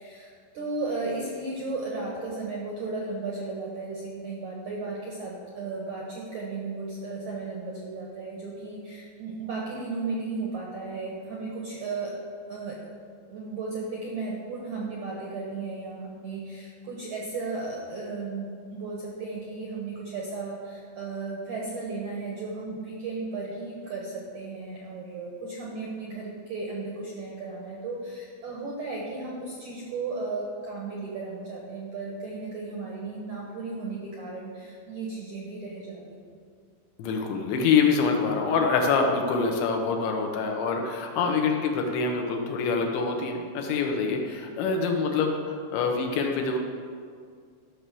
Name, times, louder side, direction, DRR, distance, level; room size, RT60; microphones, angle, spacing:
voice 1, 0.0-12.2 12.5-12.8 13.3-36.3, right 3 dB, 70° right, -3 dB, 1.9 m, -35 dB
voice 2, 37.0-46.6, left 5 dB, 75° left, 2 dB, 3.1 m, -25 dB
14.0 x 5.9 x 6.9 m, 2.1 s
omnidirectional pair, 5.6 m